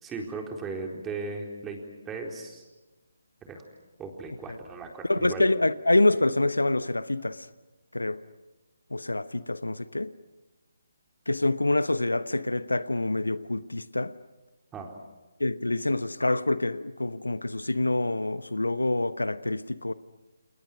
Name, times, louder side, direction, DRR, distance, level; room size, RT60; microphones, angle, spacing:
voice 1, 0.0-1.8 2.1-2.6 3.5-3.6 4.0-5.5 14.7-14.9, right 4 dB, 10° right, 4.1 m, -37 dB
voice 2, 5.1-7.5 7.9-8.2 8.9-10.1 11.3-14.1 15.4-19.9, left 2 dB, 80° left, 1.0 m, -26 dB
30.0 x 29.5 x 6.3 m
figure-of-eight pair, 140°, 0 cm